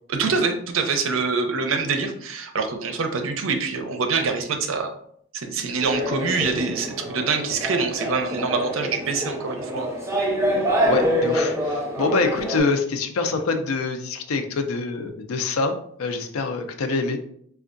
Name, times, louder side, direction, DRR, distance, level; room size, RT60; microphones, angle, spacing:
voice 1, 0.1-4.9 5.3-9.9, right 4 dB, 70° right, 6 dB, 0.5 m, -25 dB
sound 1, 5.8-12.6, equal, 15° right, 0.5 m, -26 dB
voice 2, 10.9-17.2, left 4 dB, 85° left, 7 dB, 0.5 m, -25 dB
4.4 x 2.3 x 2.5 m, 0.67 s
head